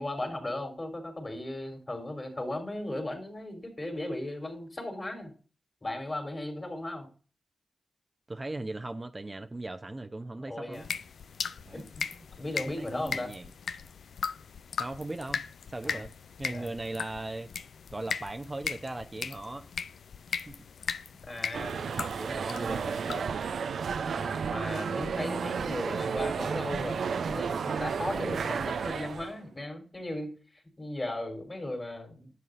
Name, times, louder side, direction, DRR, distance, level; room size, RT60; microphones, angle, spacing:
voice 1, 0.0-5.3 5.8-7.1 10.5-10.9 11.7-13.3 15.8-16.0 16.4-16.7 21.2-21.9 24.1-32.3, left 1 dB, 35° left, 3.8 m, -37 dB
voice 2, 8.3-10.9 11.6-11.8 12.8-13.5 14.8-15.4 15.7-16.1 16.4-17.5 17.9-19.7 20.3-20.6 22.2-23.3, right 2 dB, 30° right, 0.8 m, -38 dB
sound 1, 10.7-23.2, left 6 dB, 75° left, 0.4 m, -38 dB
sound 2, 21.5-29.4, right 6 dB, 80° right, 0.6 m, -32 dB
11.0 x 7.2 x 2.6 m
supercardioid pair, 40°, 0 cm